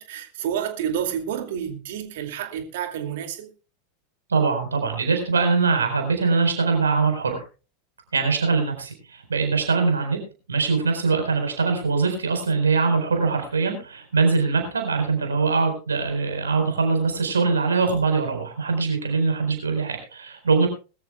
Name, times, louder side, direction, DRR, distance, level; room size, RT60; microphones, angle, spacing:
voice 1, 0.0-3.5, right 9 dB, 60° right, 2.4 m, -29 dB
voice 2, 4.3-7.4 8.1-10.2 10.5-20.7, right 4 dB, 75° right, 4.3 m, -22 dB
21.5 x 13.5 x 2.3 m
figure-of-eight pair, 85°, 0 cm